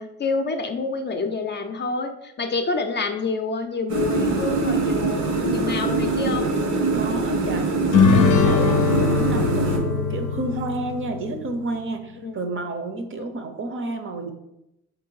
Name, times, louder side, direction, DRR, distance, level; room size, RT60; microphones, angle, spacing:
voice 1, 0.0-5.2 5.5-6.5 12.2-12.4, left 4 dB, 35° left, 6 dB, 0.5 m, -27 dB
sound 1, 3.9-9.8, right 3 dB, 70° right, 0.9 m, -23 dB
voice 2, 6.9-14.3, right 2 dB, 40° right, 6 dB, 0.6 m, -30 dB
sound 2, 7.9-11.5, left 5 dB, 85° left, 0.5 m, -21 dB
3.5 x 2.7 x 4.6 m, 0.87 s
cardioid pair, 90°, 30 cm